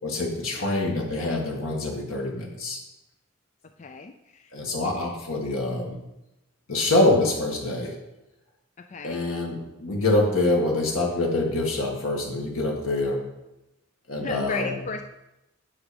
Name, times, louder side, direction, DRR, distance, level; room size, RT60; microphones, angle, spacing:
voice 1, 0.0-2.8 4.5-6.0 6.7-7.9 9.0-13.2 14.1-14.8, left 2 dB, 85° left, 0 dB, 2.0 m, -25 dB
voice 2, 3.8-4.5 8.9-9.2 14.2-15.0, left 4 dB, 35° left, 7 dB, 0.4 m, -35 dB
9.5 x 6.1 x 5.2 m, 0.92 s
head